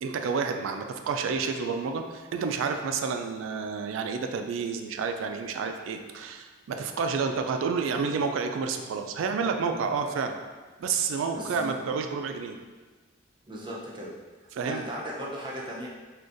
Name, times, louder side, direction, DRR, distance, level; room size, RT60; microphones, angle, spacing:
voice 1, 0.0-10.4 10.8-12.6 14.5-14.8, right 5 dB, 80° right, 6 dB, 0.3 m, -30 dB
voice 2, 11.3-11.8 13.5-14.1 14.6-15.9, equal, 25° right, -4 dB, 0.5 m, -36 dB
3.8 x 2.5 x 2.5 m, 1.3 s
head